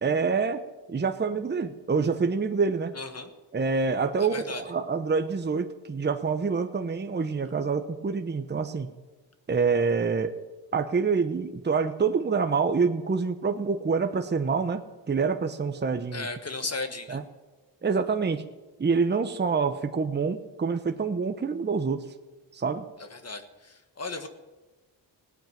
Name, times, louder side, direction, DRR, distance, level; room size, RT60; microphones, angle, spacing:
voice 1, 0.0-0.6 0.9-2.9 3.5-8.9 9.5-10.3 10.7-16.3 17.1-17.2 17.8-18.4 18.8-22.0 22.5-22.9, right 5 dB, 25° right, 8 dB, 1.0 m, -26 dB
voice 2, 2.9-3.3 4.2-4.6 16.1-17.2 23.1-24.3, left 3 dB, 35° left, 8 dB, 1.5 m, -35 dB
17.0 x 9.0 x 9.3 m, 1.2 s
cardioid pair, 80°, 43 cm